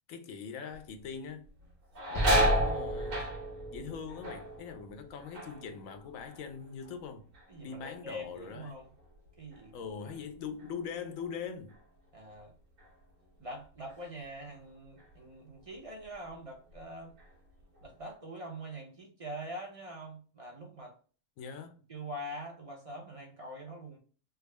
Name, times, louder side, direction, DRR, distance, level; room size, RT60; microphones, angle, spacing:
voice 1, 0.1-1.5 2.1-3.2 3.7-7.3 7.6-8.8 9.7-11.8 21.4-21.8, left 6 dB, 75° left, 1.0 m, -42 dB
sound 1, 0.7-1.1 1.4-7.0 7.3-7.9 8.4-11.4 11.7-11.8 12.8-13.0 13.4-14.5 15.0-15.1 15.7-16.4 16.7-17.9, right 1 dB, 65° right, 1.4 m, -34 dB
Explosion, 2.1-5.4, equal, 25° left, 0.5 m, -34 dB
voice 2, 7.5-8.9 9.4-9.7 10.0-10.2 12.1-12.5 13.4-17.1 17.8-21.0 21.9-24.0, right 1 dB, 40° right, 0.5 m, -44 dB
3.5 x 2.0 x 3.3 m
omnidirectional pair, 1.5 m